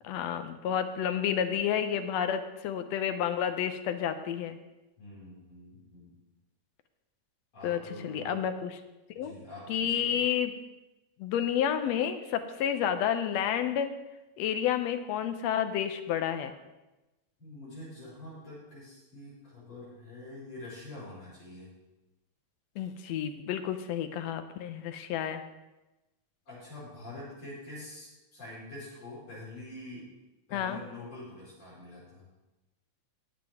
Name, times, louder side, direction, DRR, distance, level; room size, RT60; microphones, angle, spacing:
voice 1, 0.0-4.6 7.6-8.8 9.2-9.3 9.7-10.5 11.2-13.9 14.4-16.6 22.8-25.4 30.5-30.8, left 9 dB, 75° left, 9 dB, 1.8 m, -30 dB
voice 2, 5.0-6.2 7.5-8.3 9.1-10.2 17.4-21.7 26.5-30.1 30.5-32.3, left 1 dB, 55° left, -9 dB, 6.2 m, -46 dB
19.0 x 7.2 x 3.6 m, 1.0 s
omnidirectional pair, 3.4 m